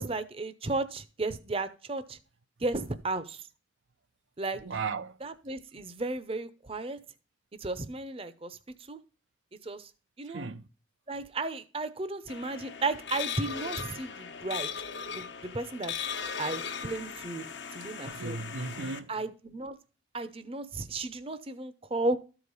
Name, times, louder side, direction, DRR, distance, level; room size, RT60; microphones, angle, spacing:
voice 1, 0.0-2.2 2.6-3.4 4.4-4.6 5.2-7.0 7.6-8.6 8.9-9.0 9.6-9.9 10.2-10.4 11.1-14.7 15.1-15.9 16.4-17.4 17.7-18.4 19.1-19.7 20.1-22.2, right 2 dB, 30° right, 0.7 m, -34 dB
voice 2, 4.5-5.2 10.3-10.7 18.0-19.1, right 4 dB, 85° right, 0.7 m, -36 dB
sound 1, 12.3-19.0, left 6 dB, 70° left, 1.0 m, -38 dB
13.0 x 4.9 x 5.4 m
head